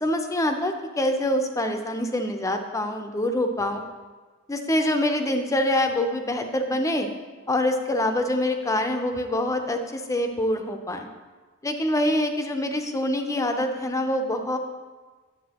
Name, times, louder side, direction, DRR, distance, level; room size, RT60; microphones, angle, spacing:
voice 1, 0.0-3.8 4.5-7.1 7.5-11.1 11.6-14.6, left 1 dB, 15° left, 6 dB, 0.5 m, -25 dB
9.5 x 7.8 x 2.9 m, 1.4 s
head